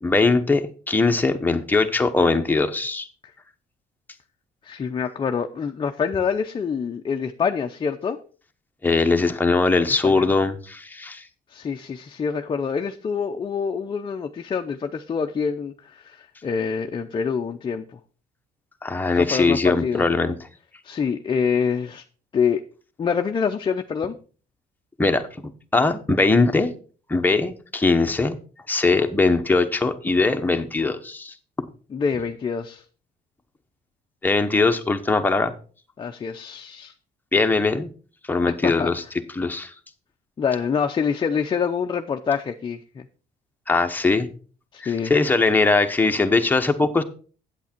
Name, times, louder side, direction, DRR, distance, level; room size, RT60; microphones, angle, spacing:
voice 1, 0.0-3.1 8.8-11.2 18.8-20.3 25.0-25.3 25.7-26.7 27.1-28.4 28.7-31.3 34.2-35.5 37.3-37.9 38.3-39.0 39.3-39.7 43.7-44.3 44.8-47.0, left 3 dB, 10° left, 1.0 m, -21 dB
voice 2, 4.6-8.2 10.0-10.3 11.5-17.8 19.1-20.1 20.8-22.0 22.3-22.6 23.0-24.1 31.9-32.8 36.0-36.9 38.6-38.9 40.4-42.8 44.7-45.1, left 6 dB, 30° left, 0.6 m, -26 dB
8.3 x 8.2 x 4.4 m
cardioid pair, 110°, 17 cm